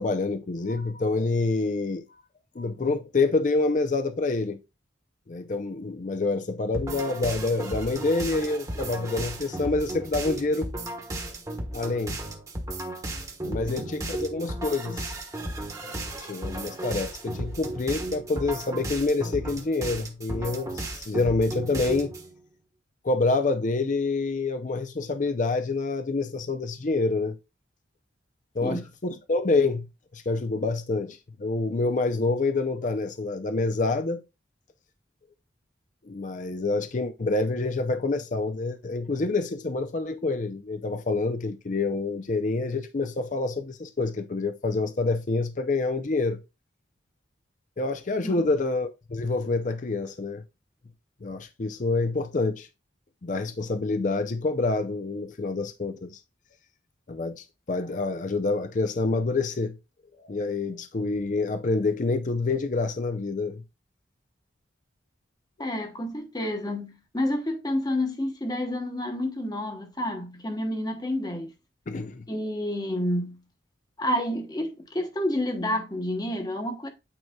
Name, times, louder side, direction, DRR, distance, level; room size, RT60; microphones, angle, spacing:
voice 1, 0.0-2.2 2.6-4.6 5.3-10.7 11.7-12.2 13.4-15.1 15.8-22.1 23.0-27.4 28.5-29.9 30.1-34.2 36.1-46.4 47.8-50.4 51.2-52.7 53.2-56.2 57.1-59.8 60.2-63.6 65.6-65.7 71.9-72.3, left 3 dB, 40° left, 0.5 m, -27 dB
sound 1, 6.7-22.3, right 1 dB, 20° right, 1.1 m, -35 dB
voice 2, 65.6-71.5 72.3-73.4 74.0-76.9, left 1 dB, 20° left, 1.0 m, -29 dB
8.9 x 4.6 x 2.3 m
head